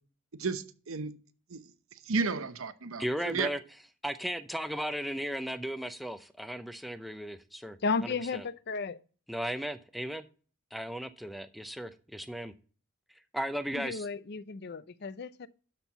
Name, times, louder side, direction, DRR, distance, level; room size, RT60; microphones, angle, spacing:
voice 1, 0.4-1.1 1.5-1.6 2.1-3.5, right 4 dB, 80° right, 0.9 m, -33 dB
voice 2, 3.0-3.6 4.0-7.8 8.0-8.4 9.3-10.2 10.7-12.5 13.3-14.1, equal, ahead, 0.5 m, -36 dB
voice 3, 7.8-9.0 13.7-15.5, left 4 dB, 50° left, 0.5 m, -34 dB
12.5 x 4.5 x 5.7 m
head